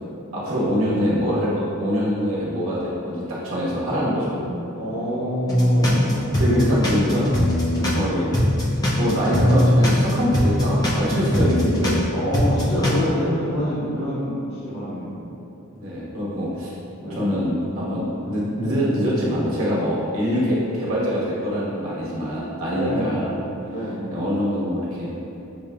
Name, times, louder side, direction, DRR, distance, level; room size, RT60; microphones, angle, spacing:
voice 1, 0.3-4.4 6.2-7.3 7.9-8.4 8.9-12.1 15.7-16.7 17.1-23.3 24.1-25.1, equal, 65° right, -7 dB, 1.1 m, -24 dB
voice 2, 4.3-6.2 6.5-6.6 7.7-8.0 12.1-15.2 17.0-17.4 22.7-23.3 23.7-24.0, equal, 75° left, -15 dB, 1.4 m, -27 dB
sound 1, 5.5-8.0 8.3-12.0 12.3-13.0, left 1 dB, 20° left, 0.5 m, -20 dB
6.5 x 2.5 x 2.2 m, 2.8 s
head